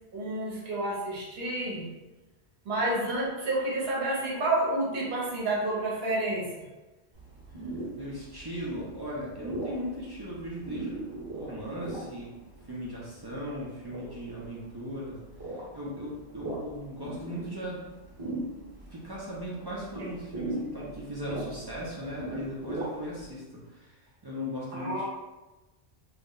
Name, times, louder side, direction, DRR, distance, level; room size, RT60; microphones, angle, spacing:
voice 1, 0.1-1.9 2.7-6.6 24.7-25.0, right 1 dB, 70° right, -4 dB, 1.0 m, -29 dB
sound 1, 7.1-23.3, right 2 dB, 20° right, 1.0 m, -40 dB
voice 2, 7.9-12.3 12.7-17.9 18.9-25.0, equal, 40° right, -6 dB, 0.3 m, -38 dB
2.4 x 2.0 x 3.6 m, 1.1 s
omnidirectional pair, 1.1 m